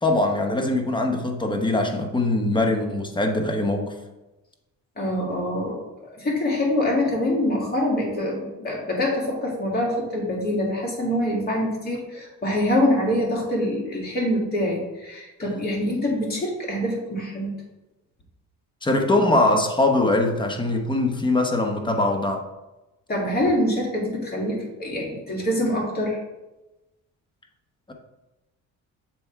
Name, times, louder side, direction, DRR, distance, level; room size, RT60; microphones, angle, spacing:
voice 1, 0.0-3.9 15.4-15.5 18.8-22.4, left 2 dB, 15° left, 3 dB, 1.0 m, -22 dB
voice 2, 5.0-5.8 6.2-17.5 23.1-26.2, left 1 dB, 30° left, -3 dB, 2.3 m, -25 dB
7.1 x 3.4 x 4.6 m, 1.0 s
cardioid pair, 95°, 32 cm